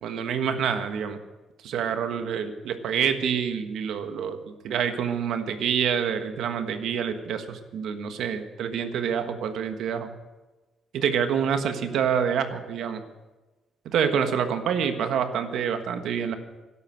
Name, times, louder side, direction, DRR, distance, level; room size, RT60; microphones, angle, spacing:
voice 1, 0.0-1.2 1.6-10.1 10.9-13.0 13.8-16.4, right 7 dB, 75° right, 8 dB, 1.4 m, -27 dB
12.5 x 11.5 x 7.6 m, 1.2 s
cardioid pair, 90°, 0 cm